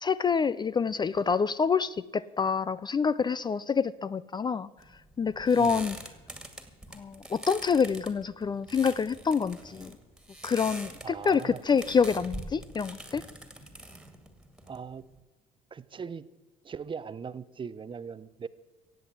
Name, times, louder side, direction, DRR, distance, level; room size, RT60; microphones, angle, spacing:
voice 1, 0.0-4.7 5.2-6.0 6.9-10.0 10.4-13.2, left 6 dB, 25° left, 17 dB, 0.4 m, -27 dB
sound 1, 4.8-15.2, right 1 dB, 5° right, 2.0 m, -44 dB
voice 2, 5.6-5.9 11.0-11.6 14.7-15.0 15.7-16.2 16.6-18.5, right 6 dB, 30° right, 16 dB, 0.7 m, -39 dB
17.0 x 7.8 x 8.3 m, 1.3 s
cardioid pair, 110°, 17 cm